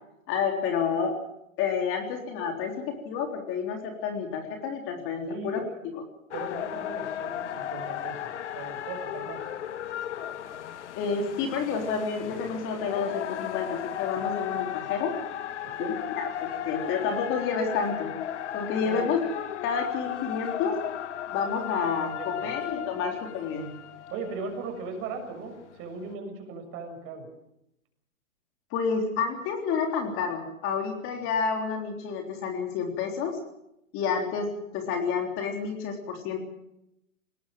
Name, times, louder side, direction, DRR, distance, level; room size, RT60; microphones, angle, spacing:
voice 1, 0.3-1.2 1.6-5.6 5.9-6.0 11.0-15.1 15.8-18.1 18.5-19.2 19.6-20.8 21.3-23.7 28.7-33.4 33.9-36.4, left 6 dB, 30° left, 3 dB, 3.6 m, -29 dB
voice 2, 5.3-5.8 6.3-9.4 15.6-16.0 18.7-19.1 22.2-22.5 24.1-27.3, right 4 dB, 35° right, 4 dB, 7.1 m, -38 dB
sound 1, 6.3-25.2 25.8-25.9, left 11 dB, 60° left, 1.7 m, -35 dB
21.0 x 19.0 x 7.7 m, 0.83 s
hypercardioid pair, 125°, 40 cm